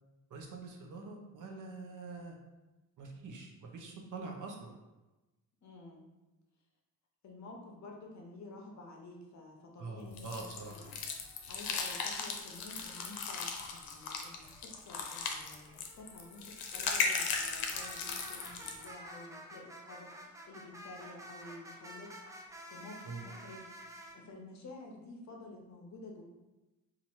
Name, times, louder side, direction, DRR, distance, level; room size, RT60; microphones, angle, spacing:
voice 1, 0.3-2.4 3.0-4.7 9.8-10.8 23.0-23.2, right 3 dB, 60° right, 1 dB, 0.7 m, -44 dB
voice 2, 5.6-6.0 7.2-10.3 10.7-11.0 11.5-22.1 22.7-23.7 24.1-26.2, left 2 dB, 50° left, 0 dB, 0.8 m, -51 dB
sound 1, 10.2-18.9, left 5 dB, 85° left, 0.6 m, -37 dB
sound 2, 10.3-13.2 13.6-24.2, equal, 10° right, 0.3 m, -52 dB
2.9 x 2.5 x 4.3 m, 1.1 s
cardioid pair, 125°, 36 cm